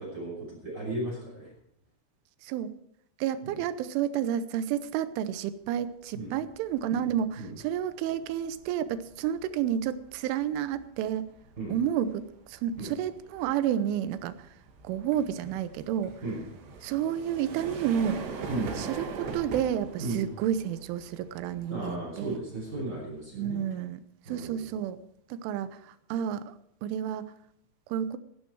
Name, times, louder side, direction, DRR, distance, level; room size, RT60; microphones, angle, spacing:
voice 1, 0.0-1.5 3.4-3.6 6.1-6.4 6.9-7.1 7.4-7.5 11.6-11.8 12.8-12.9 16.2-16.4 18.5-18.7 20.0-20.2 21.7-23.6 24.2-24.8, right 2 dB, 20° right, -2 dB, 6.3 m, -35 dB
voice 2, 2.4-2.7 3.2-11.3 11.7-14.5 14.8-16.1 16.8-18.3 18.8-22.4 23.3-24.0 24.3-25.0 25.3-26.6 26.8-27.3 27.9-28.2, right 9 dB, 90° right, 13 dB, 3.3 m, -30 dB
sound 1, 5.8-6.1 6.5-23.2, right 4 dB, 65° right, 3.9 m, -44 dB
16.0 x 12.0 x 4.7 m, 0.73 s
omnidirectional pair, 5.5 m